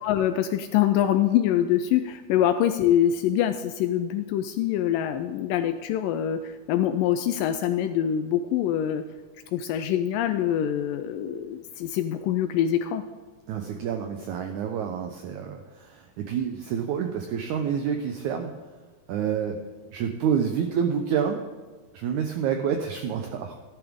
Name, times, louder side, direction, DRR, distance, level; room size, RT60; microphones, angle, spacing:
voice 1, 0.0-9.0 9.5-13.0, left 10 dB, 80° left, 10 dB, 2.0 m, -24 dB
voice 2, 13.5-18.5 19.1-19.6 19.9-21.4 21.9-23.6, right 7 dB, 85° right, 5 dB, 1.7 m, -28 dB
13.5 x 12.0 x 3.6 m, 1.3 s
omnidirectional pair, 4.3 m